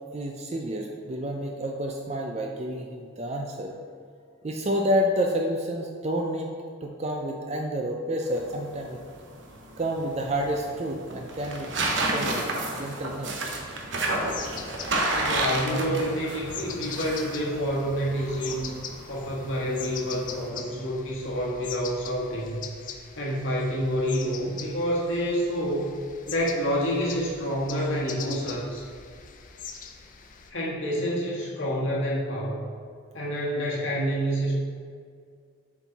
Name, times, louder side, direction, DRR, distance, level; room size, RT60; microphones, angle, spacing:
voice 1, 0.1-3.7 4.4-6.5 6.8-9.0 9.8-11.7 12.1-13.5, equal, 30° right, 1 dB, 0.4 m, -29 dB
sound 1, 8.3-20.5, right 2 dB, 60° right, 0.9 m, -32 dB
sound 2, 14.1-30.5, left 7 dB, 40° left, 0.5 m, -42 dB
voice 2, 15.1-18.7 19.1-22.7 23.2-25.9 26.3-28.8 30.5-32.6 33.1-34.5, equal, 70° left, -5 dB, 1.6 m, -28 dB
7.2 x 4.6 x 4.0 m, 2.1 s
head